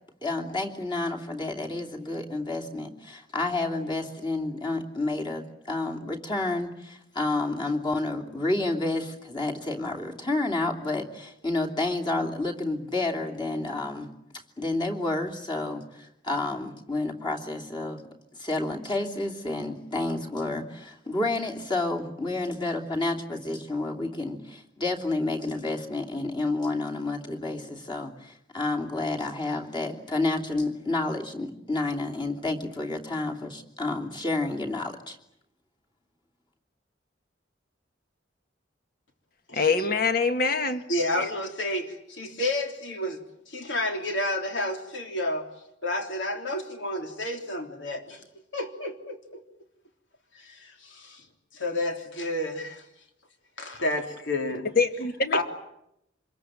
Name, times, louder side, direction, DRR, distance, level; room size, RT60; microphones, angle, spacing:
voice 1, 0.2-18.0 18.3-35.2, left 2 dB, 25° left, 0 dB, 3.0 m, -30 dB
voice 2, 39.5-40.9 41.2-41.3 54.7-55.4, left 4 dB, 50° left, 8 dB, 1.7 m, -24 dB
voice 3, 40.9-43.2 43.5-45.4 45.8-48.2 48.5-49.4 50.3-51.2 51.5-52.8 53.6-54.7 55.3-55.4, left 1 dB, 80° left, 4 dB, 3.4 m, -30 dB
26.0 x 22.0 x 8.9 m, 0.80 s
head